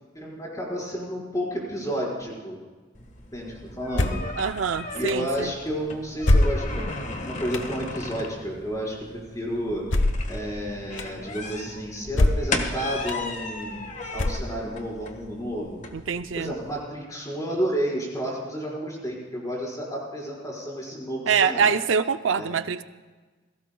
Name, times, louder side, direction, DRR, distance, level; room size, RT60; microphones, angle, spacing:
voice 1, 0.1-2.6 3.3-4.2 4.9-9.8 10.3-13.9 14.1-15.8 16.3-21.7 22.3-22.5, equal, 20° left, -4 dB, 4.8 m, -31 dB
sound 1, 2.9-16.8, left 3 dB, 40° left, 1.4 m, -37 dB
sound 2, 3.9-4.3 5.1-5.2 6.2-6.9 7.5-7.7 9.9-10.3 11.0-11.1 12.1-12.6 13.1-13.2 14.1-14.7, left 1 dB, 85° left, 1.0 m, -22 dB
voice 2, 4.4-5.5 15.9-16.5 21.3-22.8, right 6 dB, 85° right, 11 dB, 0.5 m, -24 dB
28.5 x 17.5 x 2.3 m, 1.3 s
head